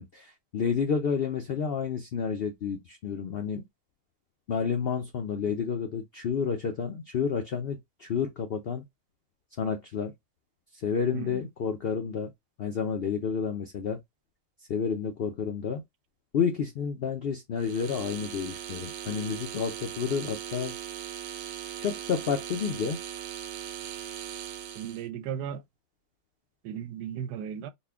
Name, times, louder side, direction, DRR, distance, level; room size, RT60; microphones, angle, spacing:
voice 1, 0.0-3.6 4.5-8.8 9.6-10.1 10.7-12.3 12.6-14.0 14.7-15.8 16.3-20.7 21.3-21.4 21.8-23.0, left 6 dB, 70° left, 0.5 m, -30 dB
sound 1, 17.6-25.1, right 10 dB, 65° right, 0.9 m, -39 dB
voice 2, 24.7-25.6 26.6-27.7, right 9 dB, 85° right, 1.1 m, -36 dB
4.2 x 2.2 x 3.4 m
omnidirectional pair, 1.7 m